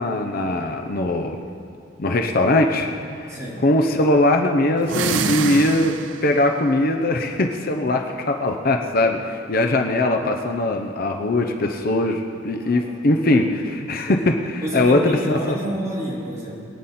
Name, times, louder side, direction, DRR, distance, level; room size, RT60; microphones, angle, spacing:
voice 1, 0.0-1.4 2.0-3.4 3.6-6.0 6.2-15.4, left 2 dB, 50° left, 3 dB, 0.7 m, -21 dB
voice 2, 3.3-3.6 12.6-12.9 14.6-16.6, right 1 dB, 15° right, -8 dB, 3.7 m, -29 dB
sound 1, 4.8-6.4, right 5 dB, 65° right, 0.6 m, -25 dB
22.0 x 9.4 x 4.3 m, 2.4 s
head